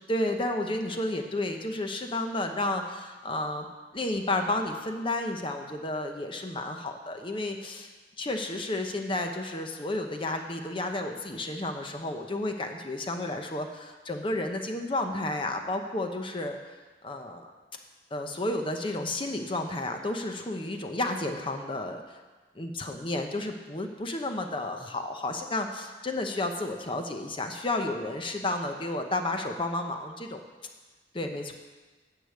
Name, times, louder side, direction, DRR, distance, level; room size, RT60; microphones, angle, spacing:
voice 1, 0.1-3.7 3.9-7.9 8.2-16.8 17.0-17.5 18.1-22.0 22.6-30.4 31.1-31.5, left 2 dB, 30° left, 4 dB, 0.8 m, -31 dB
9.9 x 6.5 x 8.2 m, 1.3 s
head